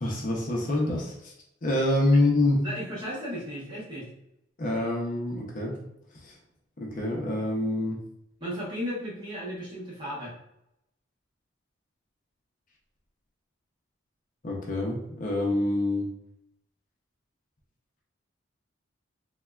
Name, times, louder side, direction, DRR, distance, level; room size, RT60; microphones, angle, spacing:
voice 1, 0.0-1.3 1.6-2.7 4.6-5.8 6.2-6.4 6.8-8.0 14.4-16.1, left 1 dB, 45° left, -1 dB, 0.5 m, -26 dB
voice 2, 2.6-4.1 8.4-10.3, equal, 25° right, -7 dB, 1.0 m, -35 dB
3.3 x 2.1 x 2.2 m, 0.81 s
head